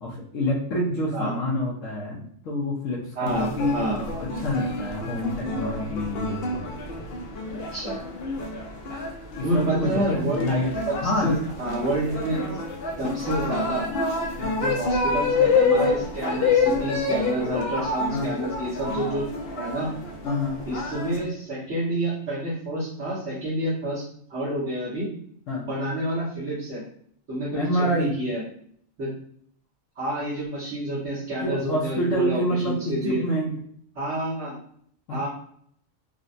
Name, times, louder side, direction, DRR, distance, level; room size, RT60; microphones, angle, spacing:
voice 1, 0.0-7.1 9.3-10.7 11.0-11.3 14.4-14.6 17.4-17.6 18.1-18.3 20.2-20.6 25.5-25.7 27.5-28.1 31.4-33.5 35.1-35.3, left 1 dB, 85° left, -6 dB, 1.1 m, -27 dB
voice 2, 3.1-4.0 7.5-8.0 9.4-10.5 10.9-11.0 11.2-12.4 13.0-13.8 14.5-19.9 20.7-24.0 24.3-25.1 25.6-26.8 27.3-28.4 29.0-29.1 29.9-33.2 33.9-34.6 35.1-35.3, right 1 dB, 60° right, -11 dB, 1.4 m, -28 dB
sound 1, 3.3-21.2, left 3 dB, 60° left, 0.7 m, -28 dB
3.8 x 2.1 x 2.5 m, 0.65 s
omnidirectional pair, 1.3 m